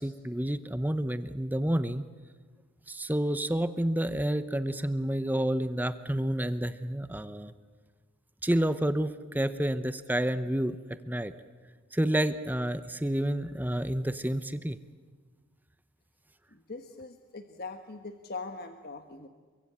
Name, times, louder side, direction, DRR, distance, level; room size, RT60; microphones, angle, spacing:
voice 1, 0.0-2.1 2.9-7.5 8.4-11.3 11.9-14.8, right 1 dB, 10° right, 12 dB, 0.7 m, -29 dB
voice 2, 16.5-19.3, left 3 dB, 50° left, 6 dB, 1.4 m, -41 dB
28.0 x 23.5 x 8.7 m, 1.5 s
head